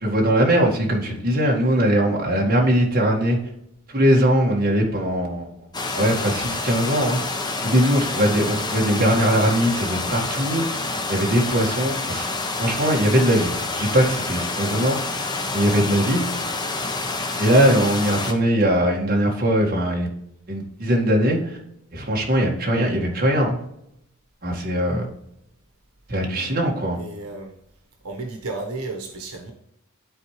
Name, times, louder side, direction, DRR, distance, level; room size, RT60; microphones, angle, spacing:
voice 1, 0.0-3.4 3.9-5.5 5.9-7.2 7.6-10.6 11.1-12.3 12.6-15.0 15.5-16.2 17.4-20.1 20.5-21.6 21.9-23.6 24.4-25.1 26.1-27.0, equal, 40° right, -1 dB, 1.8 m, -20 dB
sound 1, 5.7-18.3, left 3 dB, 20° left, 0.8 m, -28 dB
voice 2, 22.0-22.3 24.9-25.0 27.0-27.6 28.0-29.5, right 2 dB, 80° right, 2 dB, 1.2 m, -34 dB
12.0 x 4.4 x 3.2 m, 0.79 s
head